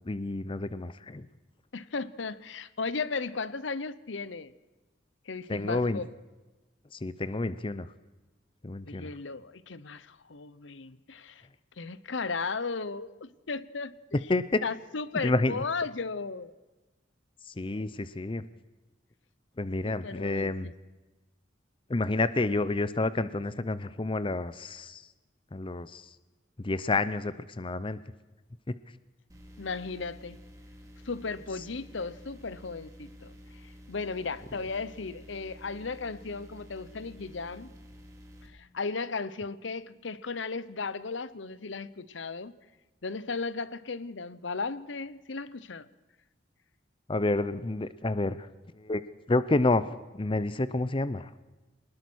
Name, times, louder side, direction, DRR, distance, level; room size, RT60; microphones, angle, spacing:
voice 1, 0.0-1.3 5.5-6.0 6.9-7.9 8.6-9.1 14.1-14.6 15.2-15.6 17.5-18.4 19.6-20.7 21.9-25.0 25.5-26.1 26.6-28.0 28.7-28.8 47.1-48.5 48.7-49.0 49.3-51.3, left 2 dB, 25° left, 15 dB, 0.6 m, -29 dB
voice 2, 1.7-4.5 5.3-6.1 8.8-11.4 11.8-13.9 14.6-16.5 19.8-20.7 29.6-30.4 31.0-33.3 33.6-37.7 38.4-42.5 43.0-45.9, left 4 dB, 70° left, 17 dB, 0.9 m, -36 dB
sound 1, 29.3-38.5, equal, 20° right, 3.7 m, -50 dB
23.0 x 20.0 x 6.3 m, 1.2 s
head